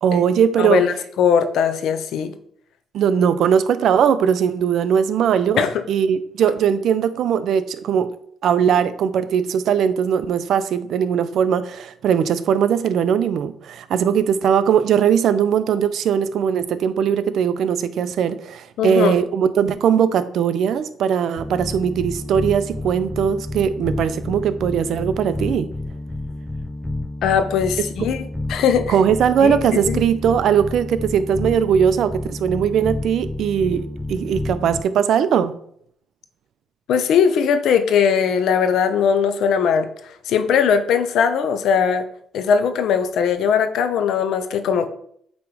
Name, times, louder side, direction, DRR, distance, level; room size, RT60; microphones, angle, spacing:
voice 1, 0.0-0.8 2.9-5.6 5.9-8.1 8.4-25.7 28.9-35.6, right 8 dB, 70° right, 0.5 m, -19 dB
voice 2, 0.6-2.3 5.6-5.8 18.8-19.1 27.2-28.2 28.5-29.0 29.4-30.0 36.9-39.9 40.3-42.0 42.3-44.9, left 7 dB, 80° left, 0.8 m, -19 dB
sound 1, 21.4-34.8, left 2 dB, 5° left, 0.6 m, -30 dB
8.3 x 3.1 x 4.8 m
cardioid pair, 90°, 0 cm